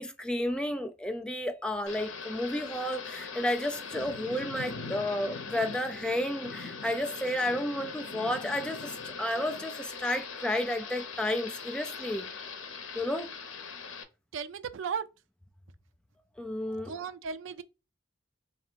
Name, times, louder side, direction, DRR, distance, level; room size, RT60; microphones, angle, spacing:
voice 1, 0.0-12.3 12.9-13.3 16.4-16.9, left 1 dB, 5° left, 0.4 m, -32 dB
Thunder / Rain, 1.9-14.0, left 4 dB, 80° left, 0.8 m, -41 dB
voice 2, 14.3-15.1 16.7-17.6, right 6 dB, 75° right, 0.4 m, -36 dB
3.5 x 2.7 x 4.1 m
head